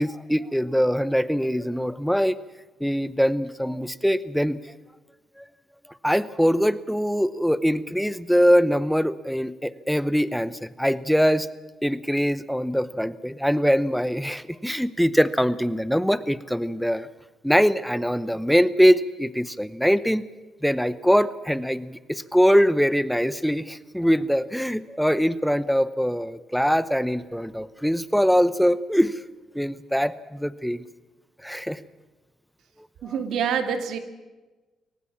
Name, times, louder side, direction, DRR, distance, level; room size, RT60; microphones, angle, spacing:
voice 1, 0.0-2.4 2.8-4.6 5.4-5.5 6.0-11.5 11.8-17.1 17.4-20.2 20.6-29.2 29.5-30.8 31.4-31.8, equal, ahead, 16 dB, 0.8 m, -22 dB
voice 2, 33.0-34.0, right 7 dB, 80° right, 8 dB, 2.1 m, -26 dB
23.0 x 19.0 x 7.4 m, 1.2 s
cardioid pair, 90°, 0 cm